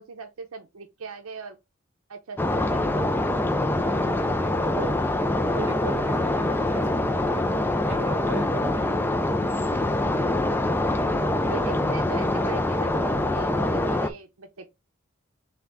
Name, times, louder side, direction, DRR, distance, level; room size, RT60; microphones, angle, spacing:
voice 1, 0.0-1.6 2.1-3.1 11.4-14.7, right 4 dB, 80° right, 0.6 m, -40 dB
sound 1, 2.4-14.1, left 1 dB, 10° left, 0.4 m, -24 dB
voice 2, 3.7-5.0 5.5-8.9, right 2 dB, 60° right, 0.9 m, -39 dB
3.5 x 3.4 x 3.9 m
head